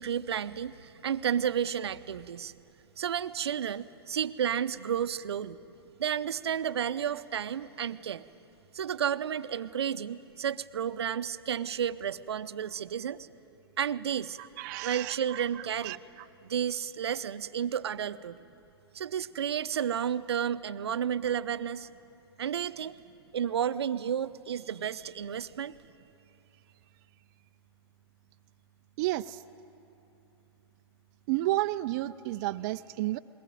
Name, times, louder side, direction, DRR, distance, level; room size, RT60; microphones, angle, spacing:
voice 1, 0.0-2.5 3.0-5.6 6.0-8.3 8.7-13.3 13.8-14.4 14.8-16.0 16.4-18.4 18.9-21.9 22.4-23.0 23.3-25.7, right 8 dB, 75° right, 13 dB, 0.7 m, -32 dB
voice 2, 14.4-16.3 29.0-29.4 31.3-33.2, right 17 dB, 45° right, 9 dB, 0.5 m, -32 dB
21.0 x 19.0 x 9.2 m, 2.9 s
hypercardioid pair, 120°, 14 cm